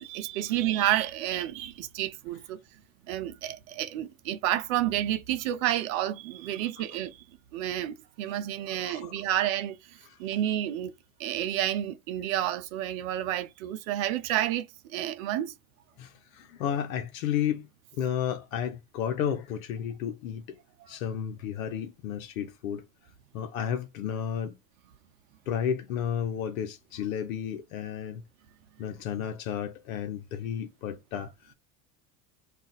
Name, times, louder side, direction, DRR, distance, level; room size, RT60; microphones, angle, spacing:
voice 1, 0.0-2.6 3.1-7.2 7.5-9.8 10.2-10.9 11.2-15.5, right 12 dB, 70° right, 0.7 m, -30 dB
voice 2, 8.7-9.2 16.0-17.7 18.0-20.6 20.9-22.8 23.3-24.6 25.5-28.2 28.8-31.5, left 9 dB, 80° left, 0.7 m, -32 dB
2.4 x 2.2 x 3.9 m
hypercardioid pair, 70°, 41 cm